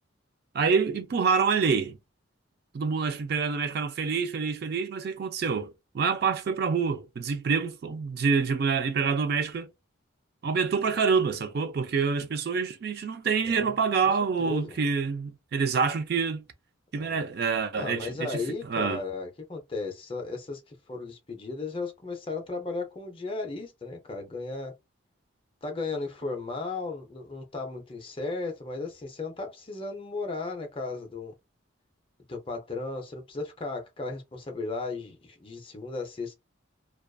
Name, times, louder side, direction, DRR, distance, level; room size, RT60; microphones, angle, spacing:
voice 1, 0.5-2.0 2.7-9.7 10.4-16.4 16.9-19.0, right 5 dB, 50° right, 0.3 m, -27 dB
voice 2, 14.4-14.8 17.0-17.2 17.7-24.7 25.6-31.3 32.3-36.3, left 3 dB, 25° left, 0.5 m, -35 dB
2.4 x 2.3 x 2.2 m
head